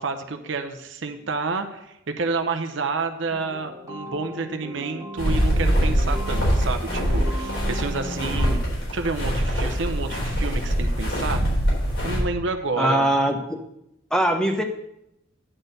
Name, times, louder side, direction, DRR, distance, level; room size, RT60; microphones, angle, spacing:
voice 1, 0.0-8.6 8.9-11.4 12.0-13.1, right 4 dB, 70° right, 6 dB, 0.7 m, -29 dB
sound 1, 3.3-8.5, equal, 15° right, 1.4 m, -37 dB
sound 2, 5.2-12.2, equal, 80° left, 4.0 m, -23 dB
voice 2, 12.8-13.6 14.1-14.6, right 1 dB, 5° left, 4 dB, 0.7 m, -21 dB
10.0 x 4.4 x 6.6 m, 0.85 s
head